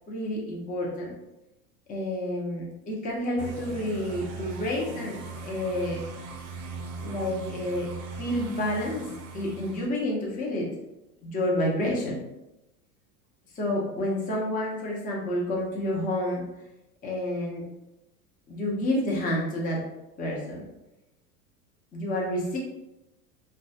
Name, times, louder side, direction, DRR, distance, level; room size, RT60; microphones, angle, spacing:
voice 1, 0.1-1.1 1.9-6.0 7.0-7.9 8.2-9.1 9.3-10.7 11.2-12.2 13.5-16.5 17.0-17.7 18.5-19.8 20.2-20.6 21.9-22.6, left 1 dB, 20° left, -3 dB, 0.6 m, -29 dB
sound 1, 3.4-9.9, right 4 dB, 40° right, 0.5 m, -39 dB
3.0 x 2.2 x 2.6 m, 0.93 s
figure-of-eight pair, 85°, 47 cm